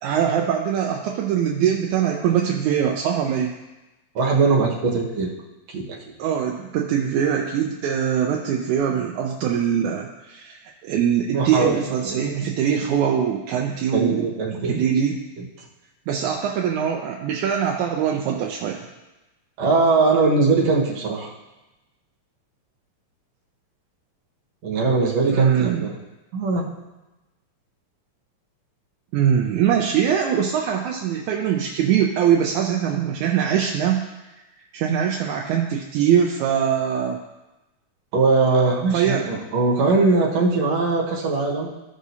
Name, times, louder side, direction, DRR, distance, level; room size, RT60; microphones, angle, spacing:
voice 1, 0.0-3.5 6.2-14.3 14.7-15.2 16.1-18.8 25.3-25.9 29.1-34.1 34.7-37.2 38.9-39.3, right 8 dB, 80° right, 1 dB, 2.1 m, -22 dB
voice 2, 4.1-5.3 5.7-6.0 11.3-11.7 12.1-12.2 13.9-14.8 15.4-15.5 19.6-21.3 24.6-25.9 26.3-26.7 38.1-41.7, right 3 dB, 65° right, -3 dB, 2.5 m, -20 dB
15.5 x 6.2 x 2.8 m, 1.1 s
omnidirectional pair, 3.4 m